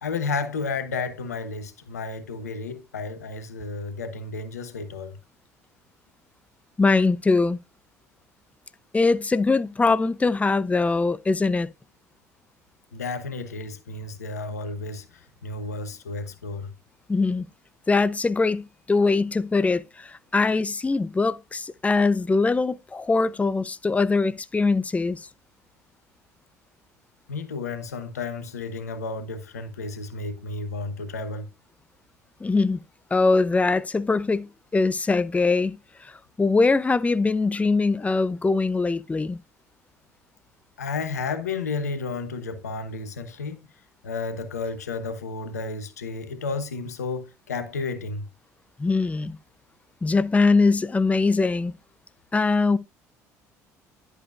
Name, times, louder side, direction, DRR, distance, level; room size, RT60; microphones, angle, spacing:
voice 1, 0.0-5.2 12.9-16.7 27.3-31.5 40.8-43.6 44.0-48.3, left 4 dB, 90° left, 1.0 m, -32 dB
voice 2, 6.8-7.6 8.9-11.7 17.1-17.5 17.9-25.3 32.4-32.8 33.1-35.8 36.0-39.4 48.8-49.4 50.0-51.7 52.3-52.8, left 3 dB, 15° left, 0.6 m, -22 dB
11.0 x 8.1 x 2.4 m
hypercardioid pair, 60°, 8 cm